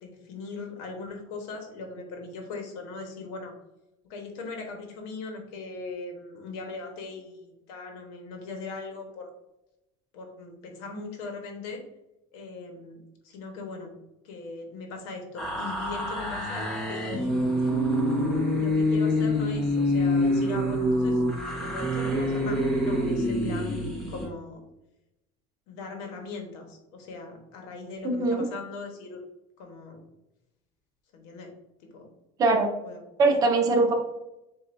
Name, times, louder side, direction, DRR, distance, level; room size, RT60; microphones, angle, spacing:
voice 1, 0.0-3.5 4.1-9.3 10.1-11.8 12.3-13.0 13.2-14.0 14.2-17.6 18.5-21.2 21.5-24.6 25.7-29.2 29.6-30.0 31.1-31.5 31.8-32.1 32.8-33.0 33.7-33.9, left 3 dB, 65° left, 3 dB, 1.2 m, -39 dB
sound 1, 15.4-24.3, left 1 dB, ahead, 1.0 m, -26 dB
voice 2, 28.0-28.5 32.4-32.7 33.2-33.9, right 3 dB, 25° right, 4 dB, 0.5 m, -22 dB
7.6 x 2.6 x 2.6 m, 0.90 s
cardioid pair, 175°, 15 cm